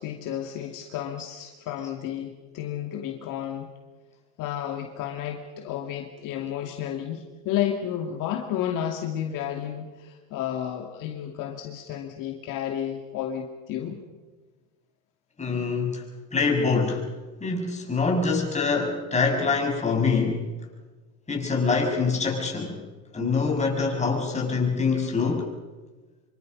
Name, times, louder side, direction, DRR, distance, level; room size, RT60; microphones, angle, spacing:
voice 1, 0.0-3.7 4.4-14.0, left 10 dB, 55° left, 2 dB, 2.7 m, -32 dB
voice 2, 15.4-16.0 16.3-17.1 17.4-20.5 21.3-22.8 23.1-25.5, left 4 dB, 15° left, 1 dB, 6.7 m, -25 dB
26.5 x 25.0 x 5.5 m, 1.3 s
supercardioid pair, 105°, 39 cm